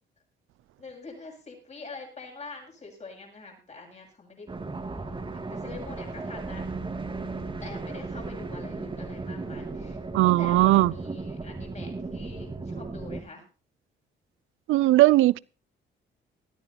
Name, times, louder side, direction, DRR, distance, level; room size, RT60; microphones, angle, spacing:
voice 1, 0.8-4.5 4.8-5.2 5.5-6.7 7.6-10.0 10.2-13.4, left 3 dB, 35° left, 7.6 m, -45 dB
sound 1, 4.5-13.2, right 3 dB, 25° right, 2.5 m, -36 dB
voice 2, 10.1-10.9 14.7-15.4, right 17 dB, 85° right, 0.5 m, -19 dB
19.5 x 14.0 x 2.9 m
cardioid pair, 90°, 20 cm